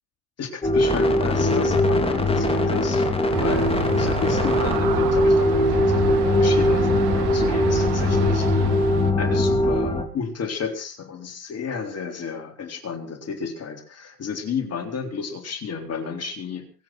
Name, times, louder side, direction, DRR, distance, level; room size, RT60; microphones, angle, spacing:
voice 1, 0.4-3.1 3.3-8.9 9.2-16.7, left 6 dB, 30° left, 5 dB, 3.8 m, -32 dB
sound 1, 0.6-10.0, left 1 dB, 10° left, 4.0 m, -21 dB
Aircraft, 3.3-9.1, right 10 dB, 55° right, 2.6 m, -29 dB
24.0 x 8.8 x 6.3 m, 0.39 s
hypercardioid pair, 105°, 47 cm